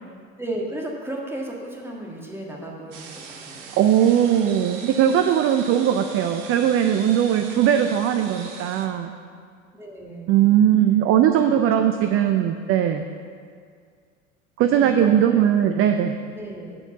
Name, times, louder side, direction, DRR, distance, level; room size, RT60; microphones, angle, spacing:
voice 1, 0.4-3.7 9.7-10.6 11.8-11.9 14.8-15.5 16.3-16.8, right 1 dB, 5° right, -2 dB, 1.7 m, -34 dB
sound 1, 2.9-8.9, right 5 dB, 50° right, 1.1 m, -40 dB
voice 2, 3.8-9.1 10.3-13.0 14.6-16.2, right 10 dB, 35° right, 7 dB, 0.4 m, -19 dB
8.6 x 4.5 x 6.8 m, 2.1 s
hypercardioid pair, 80°, 40 cm